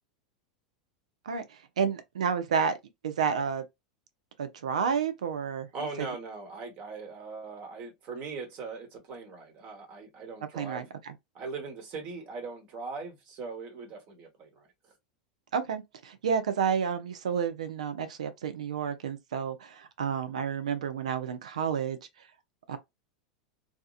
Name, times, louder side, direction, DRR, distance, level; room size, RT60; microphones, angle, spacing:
voice 1, 1.3-2.8 3.0-3.6 4.4-5.7 10.5-11.1 15.5-22.0 22.7-22.8, right 7 dB, 75° right, 0.5 m, -30 dB
voice 2, 5.7-10.8 11.3-14.9, right 4 dB, 45° right, 1.2 m, -40 dB
2.8 x 2.3 x 2.3 m
hypercardioid pair, 90°, 4 cm